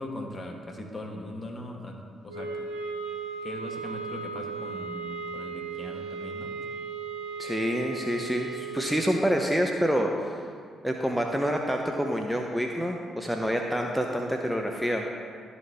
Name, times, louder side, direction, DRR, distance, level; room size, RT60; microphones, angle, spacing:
voice 1, 0.0-2.7 3.4-6.5, left 1 dB, 35° left, 2 dB, 1.3 m, -39 dB
sound 1, 2.3-9.3, right 5 dB, 75° right, 0.9 m, -36 dB
voice 2, 7.4-10.4 10.8-15.0, equal, ahead, 2 dB, 0.7 m, -27 dB
12.0 x 4.2 x 3.4 m, 2.1 s
hypercardioid pair, 45°, 0 cm